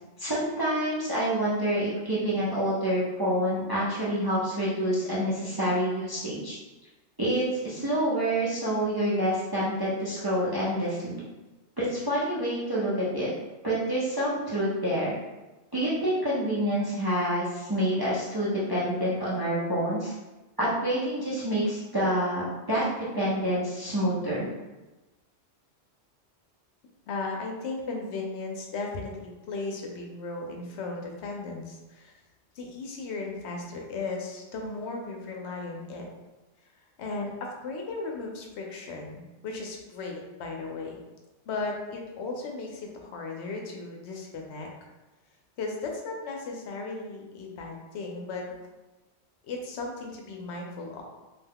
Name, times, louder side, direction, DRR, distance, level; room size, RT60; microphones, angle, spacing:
voice 1, 0.2-6.6 7.2-11.2 11.8-13.3 13.6-15.1 15.7-20.1 20.6-22.8 23.1-24.5, equal, 35° right, -9 dB, 0.4 m, -27 dB
voice 2, 27.1-32.1 32.6-36.1 37.0-41.0 41.5-44.7 45.6-48.6 49.5-51.0, left 3 dB, 75° left, 1 dB, 0.8 m, -36 dB
2.4 x 2.2 x 3.4 m, 1.1 s
omnidirectional pair, 1.2 m